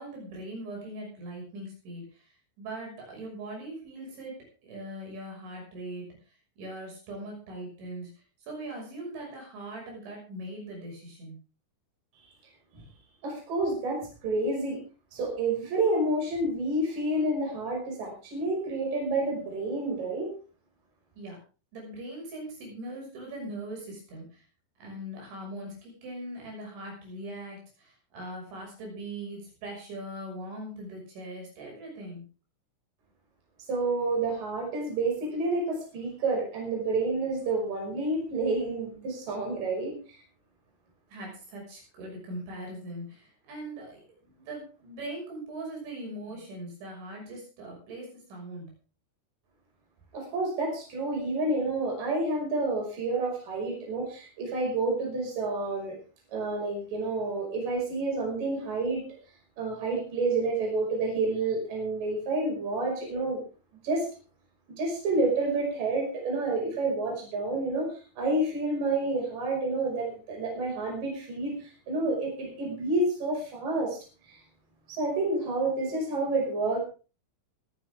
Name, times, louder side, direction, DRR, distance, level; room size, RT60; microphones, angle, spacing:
voice 1, 0.0-4.3 4.6-6.1 6.6-8.1 8.4-11.4 21.1-21.4 21.7-24.4 24.8-32.2 41.1-44.0 44.3-48.7, right 1 dB, 65° right, -1 dB, 8.3 m, -40 dB
voice 2, 13.2-14.8 15.1-20.3 33.7-40.0 50.1-56.0 56.3-59.0 59.6-63.4 63.8-64.1 64.8-74.0 74.3-74.4 74.9-76.8, right 2 dB, 45° right, -1 dB, 7.2 m, -29 dB
24.5 x 10.0 x 3.6 m, 0.35 s
omnidirectional pair, 5.7 m